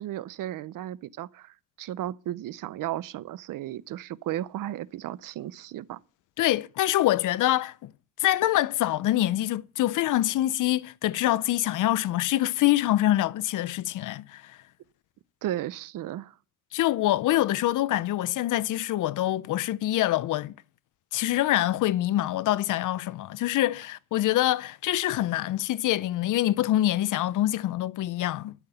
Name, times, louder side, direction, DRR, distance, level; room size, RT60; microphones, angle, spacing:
voice 1, 0.0-6.0 15.4-16.3, right 13 dB, 80° right, 0.6 m, -34 dB
voice 2, 6.4-7.9 8.2-14.6 16.7-20.5 21.1-28.5, left 14 dB, 70° left, 0.5 m, -25 dB
12.0 x 5.9 x 8.0 m
wide cardioid pair, 170°, 32 cm